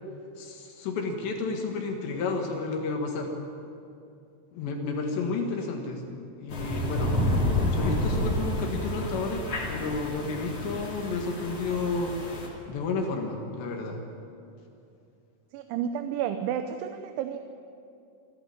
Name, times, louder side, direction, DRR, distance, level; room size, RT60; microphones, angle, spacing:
voice 1, 0.4-3.3 4.5-7.2 7.6-12.2 12.7-14.0, left 4 dB, 70° left, 2 dB, 3.8 m, -31 dB
sound 1, 6.5-12.5, left 1 dB, 35° left, 3.6 m, -29 dB
voice 2, 15.5-17.4, right 9 dB, 85° right, 7 dB, 3.2 m, -31 dB
27.5 x 11.5 x 9.7 m, 2.6 s
omnidirectional pair, 5.4 m